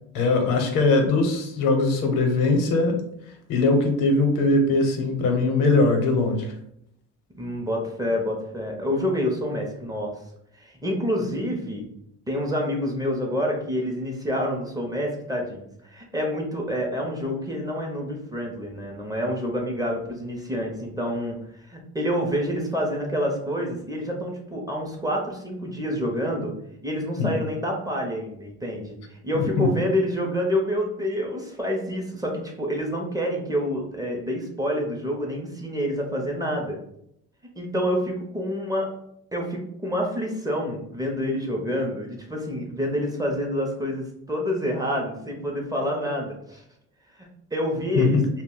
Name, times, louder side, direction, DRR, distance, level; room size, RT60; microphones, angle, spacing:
voice 1, 0.1-2.9 3.5-6.5 27.2-27.3 29.6-29.7 48.0-48.1, left 3 dB, 80° left, 4 dB, 0.7 m, -21 dB
voice 2, 7.3-10.1 10.6-11.9 12.3-21.4 21.7-26.5 26.8-36.8 37.6-38.9 39.3-46.6 47.2-48.2, equal, 10° right, 0 dB, 0.5 m, -27 dB
2.3 x 2.1 x 3.6 m, 0.75 s
cardioid pair, 115°, 32 cm